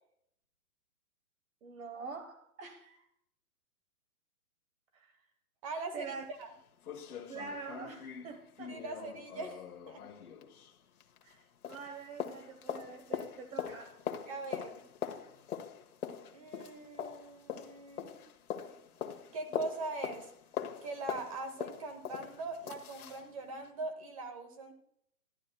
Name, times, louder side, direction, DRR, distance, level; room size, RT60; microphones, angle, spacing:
voice 1, 1.6-3.0 4.9-5.1 5.9-6.2 7.3-8.8 11.2-14.0, right 5 dB, 60° right, 1.2 m, -45 dB
voice 2, 5.6-6.1 6.4-6.5 8.7-10.0 14.3-14.8 16.3-18.2 19.3-20.3 20.8-24.7, right 3 dB, 25° right, 0.9 m, -41 dB
sound 1, 6.0-6.1 6.4-6.5 6.8-11.4 11.6-23.3 23.6-23.7, left 8 dB, 75° left, 1.4 m, -42 dB
11.5 x 11.5 x 2.2 m
hypercardioid pair, 170°, 44 cm